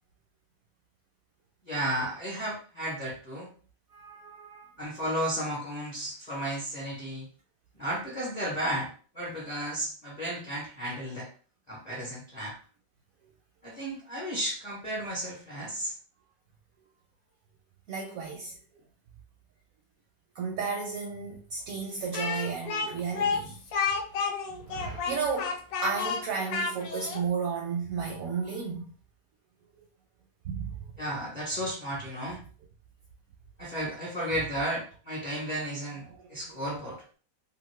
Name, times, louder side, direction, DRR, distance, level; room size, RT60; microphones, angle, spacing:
voice 1, 1.7-3.5 4.8-7.3 7.7-8.9 9.1-11.3 11.7-12.6 13.6-15.9 31.0-32.4 33.6-37.0, right 1 dB, 35° left, 0.6 m, -33 dB
voice 2, 3.9-4.7 17.9-18.5 20.4-23.6 24.6-28.9 30.4-30.7 36.5-36.8, right 5 dB, 70° right, 0.8 m, -33 dB
Speech, 22.1-27.2, left 5 dB, 65° left, 1.0 m, -31 dB
2.8 x 2.5 x 3.1 m
omnidirectional pair, 1.9 m